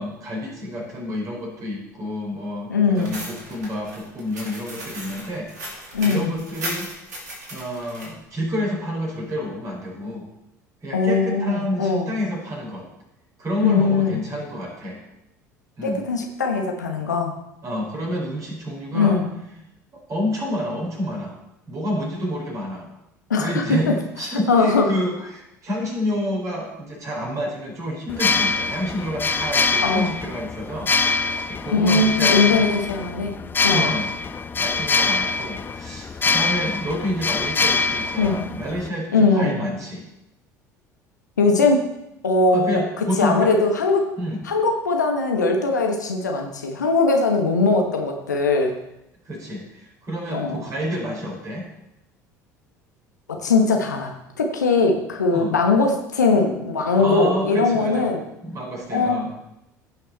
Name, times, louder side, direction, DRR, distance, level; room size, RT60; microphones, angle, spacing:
voice 1, 0.0-6.9 7.5-10.3 10.8-12.9 13.4-15.0 15.8-16.0 17.6-19.2 19.9-21.4 21.7-22.9 23.3-30.9 31.5-32.8 33.6-34.1 34.6-40.1 42.5-43.6 44.2-44.4 49.2-51.7 55.3-55.5 56.9-58.1 58.4-59.3, equal, 35° right, -1 dB, 4.5 m, -29 dB
voice 2, 2.7-3.1 5.9-6.3 10.9-12.1 13.6-14.2 15.8-17.3 18.9-19.3 23.3-23.9 24.5-24.9 29.8-30.1 31.7-33.3 33.6-33.9 38.2-38.4 39.1-39.7 41.4-41.9 42.2-42.8 43.2-44.2 44.4-48.7 50.3-50.6 53.3-58.2 58.9-59.2, left 3 dB, 80° left, 2 dB, 1.2 m, -20 dB
sound 1, 3.0-8.1, right 1 dB, 75° right, 2.5 m, -36 dB
sound 2, 28.1-38.9, left 4 dB, 20° left, 0.6 m, -24 dB
15.5 x 5.9 x 4.1 m, 0.85 s
figure-of-eight pair, 65°, 9 cm